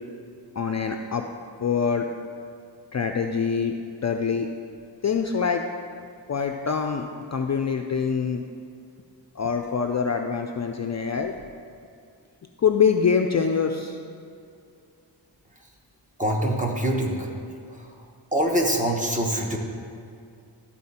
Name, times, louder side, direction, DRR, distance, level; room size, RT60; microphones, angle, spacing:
voice 1, 0.6-1.2 1.6-2.1 2.9-4.5 5.0-5.6 6.3-8.4 9.4-11.3 12.6-14.0, left 6 dB, 40° left, 4 dB, 0.4 m, -24 dB
voice 2, 16.2-17.3 17.7-17.9 18.3-19.6, right 1 dB, 20° right, 0 dB, 1.1 m, -24 dB
12.5 x 4.3 x 4.2 m, 2.4 s
wide cardioid pair, 75°, 43 cm